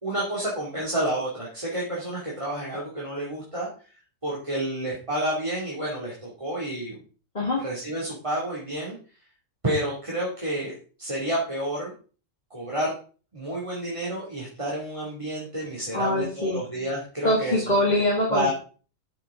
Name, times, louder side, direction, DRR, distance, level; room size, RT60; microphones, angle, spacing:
voice 1, 0.0-3.7 4.2-7.0 7.6-9.0 9.6-11.9 12.5-12.9 13.3-17.8 18.3-18.5, right 1 dB, 25° right, -5 dB, 2.7 m, -30 dB
voice 2, 15.9-16.6 17.2-18.5, left 1 dB, 35° left, -2 dB, 2.1 m, -23 dB
13.5 x 6.7 x 3.8 m, 0.38 s
omnidirectional pair, 1.4 m